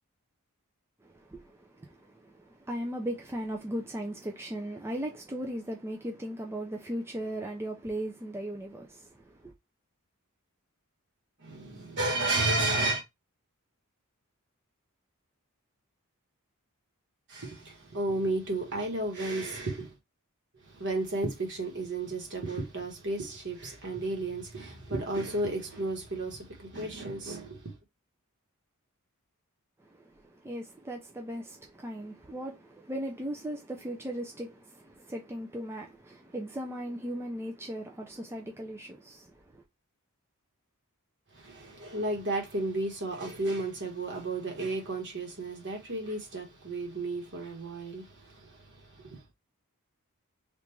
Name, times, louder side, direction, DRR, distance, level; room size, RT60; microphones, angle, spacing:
voice 1, 1.0-9.5 29.8-39.6, right 1 dB, 10° right, 0.4 m, -38 dB
voice 2, 11.4-13.0 17.3-19.9 20.7-27.7 41.3-49.2, right 2 dB, 55° right, 1.2 m, -33 dB
3.5 x 2.5 x 3.0 m
head